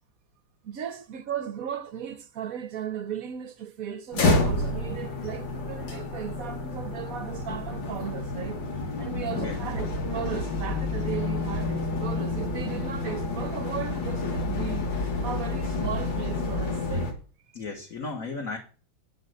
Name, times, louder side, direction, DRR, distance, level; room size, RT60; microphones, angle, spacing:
voice 1, 0.6-17.1 17.5-17.6, right 9 dB, 60° right, 1.0 m, -36 dB
sound 1, 4.1-17.1, left 2 dB, 70° left, 2.3 m, -29 dB
voice 2, 17.5-18.6, left 4 dB, 45° left, 1.8 m, -34 dB
9.1 x 5.5 x 7.9 m
omnidirectional pair, 2.2 m